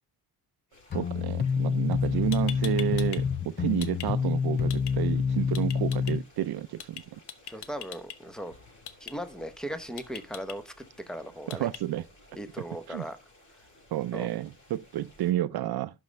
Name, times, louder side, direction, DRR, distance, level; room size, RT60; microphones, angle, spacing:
sound 1, 0.7-15.3, left 1 dB, 45° left, 5.2 m, -57 dB
sound 2, 0.9-6.2, left 6 dB, 30° left, 0.3 m, -27 dB
voice 1, 0.9-7.0 11.5-12.0 12.9-13.0 13.9-15.9, right 13 dB, 75° right, 0.5 m, -30 dB
sound 3, 2.0-2.1 2.3-3.2 3.5-4.1 4.7-4.9 5.5-6.1 6.8-7.0 7.3-8.2 8.9-9.1 10.0-10.5 11.5-11.8, left 9 dB, 85° left, 1.0 m, -40 dB
voice 2, 7.5-8.5 9.0-10.7 11.1-11.7 12.3-13.2 14.1-14.3, equal, ahead, 0.8 m, -38 dB
11.5 x 5.2 x 3.2 m
wide cardioid pair, 140°, 39 cm